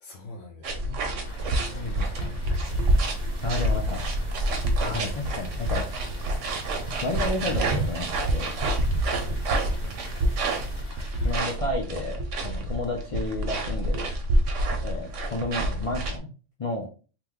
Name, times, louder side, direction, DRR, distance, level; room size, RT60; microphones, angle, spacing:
voice 1, 0.0-1.2 1.7-2.1 9.1-9.4, left 2 dB, 90° left, 1 dB, 1.0 m, -44 dB
sound 1, 0.6-16.2, right 1 dB, 90° right, 1.0 m, -27 dB
sound 2, 1.2-11.6, left 2 dB, 70° left, 1.5 m, -48 dB
voice 2, 1.4-2.3 3.4-4.0 4.8-5.9 7.0-8.5 11.2-14.1 14.8-16.3 16.6-16.9, left 2 dB, 50° left, -1 dB, 0.4 m, -32 dB
sound 3, 2.6-10.8, right 3 dB, 60° right, 0.7 m, -39 dB
3.0 x 2.1 x 3.6 m, 0.35 s
omnidirectional pair, 1.2 m